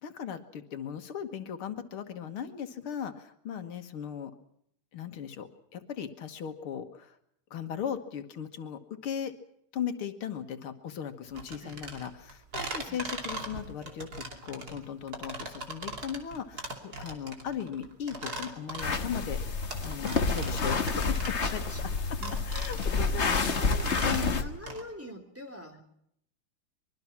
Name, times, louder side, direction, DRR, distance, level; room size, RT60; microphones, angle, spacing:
voice 1, 0.0-4.3 4.9-7.2 7.5-9.3 9.7-21.2 21.4-21.6 22.5-23.7 24.0-24.4, left 8 dB, 90° left, 7 dB, 2.4 m, -38 dB
sound 1, 11.3-24.8, right 2 dB, 45° right, 3.4 m, -40 dB
sound 2, 18.8-24.4, left 4 dB, 35° left, 1.5 m, -29 dB
voice 2, 21.0-22.3 23.5-25.8, equal, 5° right, 3 dB, 3.1 m, -45 dB
24.5 x 22.5 x 6.0 m, 0.72 s
omnidirectional pair, 2.3 m